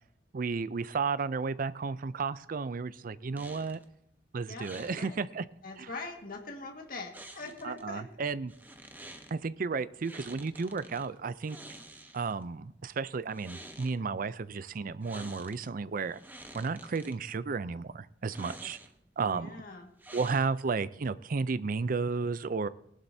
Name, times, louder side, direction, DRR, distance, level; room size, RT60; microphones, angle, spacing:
voice 1, 0.3-3.8 4.3-5.4 5.8-5.9 7.6-8.5 9.3-11.6 12.1-16.2 16.5-18.8 19.2-19.5 20.1-22.7, right 4 dB, 50° right, 16 dB, 0.5 m, -33 dB
sound 1, 3.4-3.9 4.6-5.1 7.1-7.8 8.5-9.3 10.0-11.1 11.4-12.4 13.2-14.0 15.0-15.7 16.0-17.2 18.2-19.1 20.0-20.7, right 1 dB, 10° right, 1.1 m, -49 dB
voice 2, 4.5-5.2 5.6-8.1 19.2-19.9, left 3 dB, 55° left, 2 dB, 1.8 m, -42 dB
19.0 x 11.5 x 2.7 m, 0.75 s
head